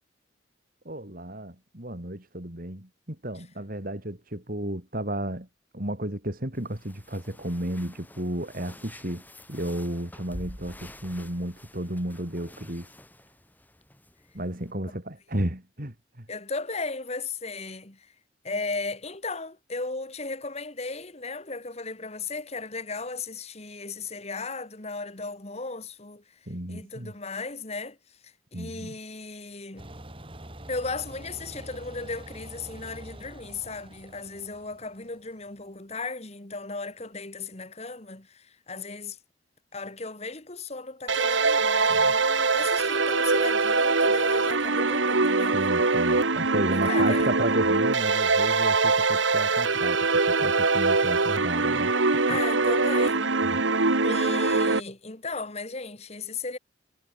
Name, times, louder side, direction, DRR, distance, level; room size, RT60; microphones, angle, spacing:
voice 1, 0.9-5.5 5.7-9.2 9.5-12.9 14.3-16.3 26.5-27.1 28.5-29.0 41.9-42.1 45.5-51.9 53.4-53.6, right 1 dB, 50° right, 3.7 m, -33 dB
sound 1, 6.5-14.7, left 1 dB, 10° left, 6.7 m, -48 dB
voice 2, 16.3-18.1 18.4-26.2 26.7-28.0 28.2-29.9 30.7-39.2 39.7-45.6 46.7-47.3 52.3-53.3 54.0-56.6, left 3 dB, 35° left, 2.3 m, -36 dB
sound 2, 29.8-35.5, right 1 dB, 30° right, 5.9 m, -45 dB
sound 3, 41.1-54.8, right 3 dB, 85° right, 2.0 m, -23 dB
head